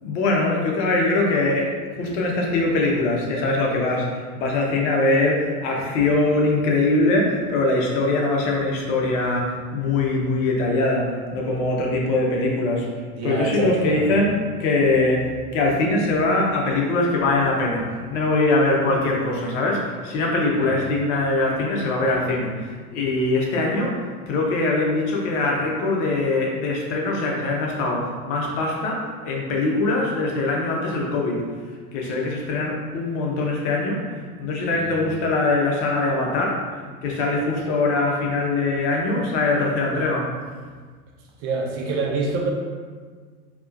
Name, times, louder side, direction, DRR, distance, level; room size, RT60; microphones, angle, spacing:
voice 1, 0.0-1.7 2.0-12.8 13.2-23.9 24.3-31.4 31.9-34.0 34.4-36.6 37.0-40.3, left 2 dB, 50° left, -1 dB, 0.9 m, -22 dB
voice 2, 13.1-14.1 20.5-20.8 34.8-35.0 41.4-42.5, right 3 dB, 35° right, -1 dB, 0.7 m, -27 dB
4.6 x 3.0 x 2.5 m, 1.5 s
hypercardioid pair, 95°, 47 cm